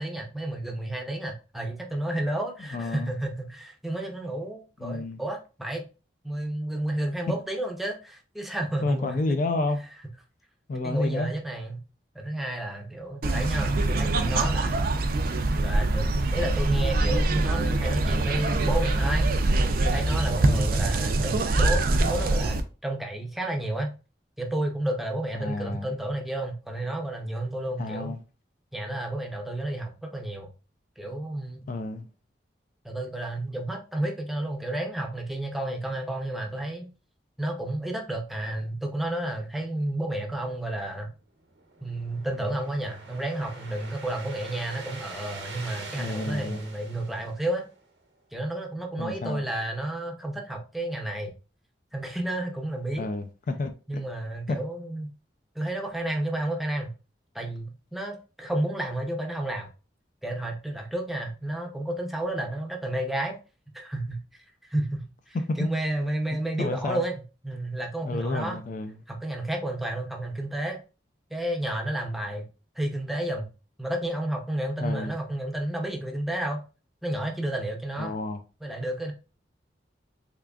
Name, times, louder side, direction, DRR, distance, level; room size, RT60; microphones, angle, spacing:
voice 1, 0.0-5.8 6.2-9.2 10.8-11.8 12.1-14.8 15.6-19.2 19.8-22.6 22.8-23.9 24.4-28.2 28.7-30.5 31.0-31.7 32.8-36.9 37.4-41.1 41.8-47.6 48.3-51.3 51.9-53.1 53.9-55.1 55.6-56.9 57.3-59.7 60.2-63.4 63.7-64.2 64.7-68.6 69.1-70.8 71.3-72.4 72.8-73.5 73.8-76.6 77.0-78.2 78.6-79.1, right 1 dB, ahead, 0.6 m, -31 dB
voice 2, 2.7-3.1 4.8-5.2 8.8-9.8 10.7-11.3 20.4-20.7 25.3-25.9 27.8-28.2 31.7-32.1 46.0-46.6 49.0-49.4 53.0-54.0 54.5-54.6 65.3-65.7 66.3-67.0 68.0-69.0 74.8-75.1 78.0-78.4, left 2 dB, 45° left, 0.3 m, -30 dB
sound 1, 13.2-22.6, right 2 dB, 50° right, 0.4 m, -24 dB
sound 2, 41.4-47.9, right 3 dB, 85° right, 1.0 m, -44 dB
3.6 x 3.3 x 2.3 m
head